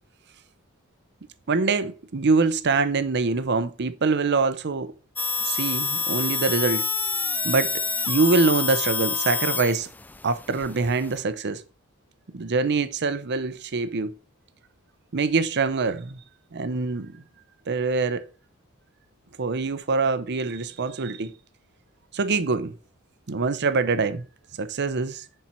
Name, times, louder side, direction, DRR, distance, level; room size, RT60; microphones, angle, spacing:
voice 1, 1.5-4.9 5.4-6.9 7.4-7.7 8.1-9.9 10.2-11.6 12.3-14.1 15.1-16.2 16.5-17.2 17.7-18.2 19.4-21.3 22.1-22.7 23.3-24.2 24.6-25.2, right 4 dB, 55° right, 0.7 m, -24 dB
sound 1, 5.2-11.2, left 4 dB, 10° left, 0.4 m, -28 dB
10.5 x 4.4 x 4.4 m
head